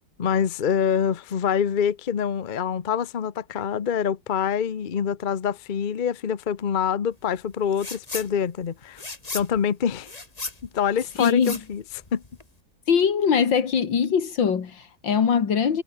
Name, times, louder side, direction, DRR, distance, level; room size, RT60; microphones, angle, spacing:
voice 1, 0.2-9.0 9.3-10.1 10.7-11.8 12.1-12.2, left 8 dB, 40° left, 0.7 m, -25 dB
sound 1, 7.7-8.3 8.6-12.6, left 2 dB, 20° left, 2.1 m, -36 dB
voice 2, 11.2-11.6 12.9-15.8, left 7 dB, 85° left, 2.7 m, -22 dB
omnidirectional pair, 2.0 m